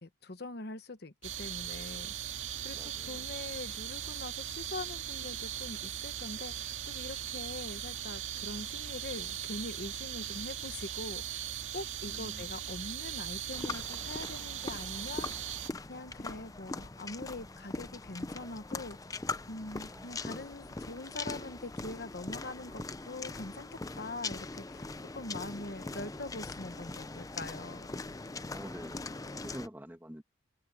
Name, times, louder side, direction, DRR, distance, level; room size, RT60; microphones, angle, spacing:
voice 1, 0.0-2.3 2.6-11.4 11.7-15.5 15.9-19.0 19.5-24.8 25.1-28.0, left 2 dB, 55° left, 1.1 m, -43 dB
sound 1, 1.2-15.7, right 10 dB, 85° right, 2.1 m, -39 dB
voice 2, 2.7-3.3 12.1-12.5 19.9-20.4 28.5-30.2, equal, 10° right, 1.8 m, -48 dB
sound 2, 13.5-29.7, left 3 dB, 20° left, 0.5 m, -41 dB
head